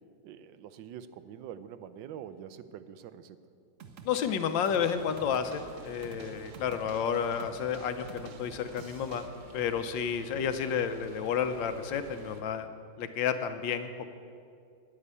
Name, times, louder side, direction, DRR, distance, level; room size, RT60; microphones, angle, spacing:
voice 1, 0.2-3.4 10.3-10.5, right 9 dB, 80° right, 13 dB, 1.3 m, -45 dB
sound 1, 3.8-9.3, right 5 dB, 55° right, 0.9 m, -49 dB
voice 2, 4.0-9.2 9.5-12.7 13.0-14.0, left 7 dB, 75° left, 9 dB, 1.4 m, -31 dB
sound 2, 4.9-12.4, right 1 dB, 35° right, 0.9 m, -52 dB
9.8 x 9.8 x 8.3 m, 2.4 s
omnidirectional pair, 2.1 m